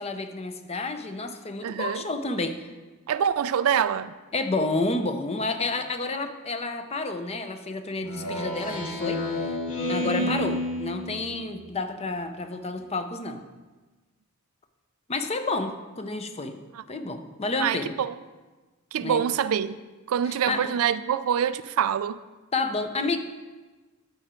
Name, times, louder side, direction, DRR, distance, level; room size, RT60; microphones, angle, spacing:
voice 1, 0.0-2.7 4.3-9.6 9.9-13.4 15.1-16.6 16.9-17.9 19.0-19.2 20.5-20.8 22.5-23.2, left 3 dB, 30° left, 0.7 m, -30 dB
voice 2, 1.6-2.1 3.1-4.1 10.0-10.4 16.7-16.8 17.6-18.2 18.9-19.8 20.1-22.2, right 8 dB, 75° right, 0.3 m, -25 dB
Speech synthesizer, 8.0-11.5, left 1 dB, 80° left, 1.8 m, -30 dB
13.0 x 5.0 x 4.4 m
head